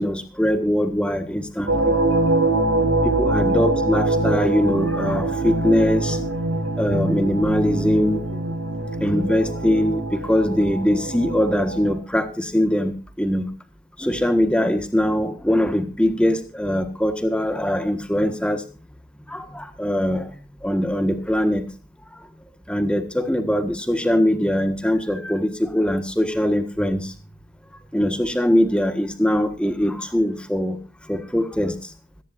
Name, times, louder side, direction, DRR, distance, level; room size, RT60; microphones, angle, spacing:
voice 1, 0.0-2.0 3.0-6.2 6.8-8.2 9.0-13.5 14.0-18.6 19.3-20.3 20.6-21.7 22.7-27.1 27.9-30.8 31.1-31.7, equal, 5° left, 9 dB, 1.5 m, -22 dB
sound 1, 1.7-11.9, right 2 dB, 80° right, 4.1 m, -23 dB
26.0 x 10.5 x 2.6 m, 0.33 s
head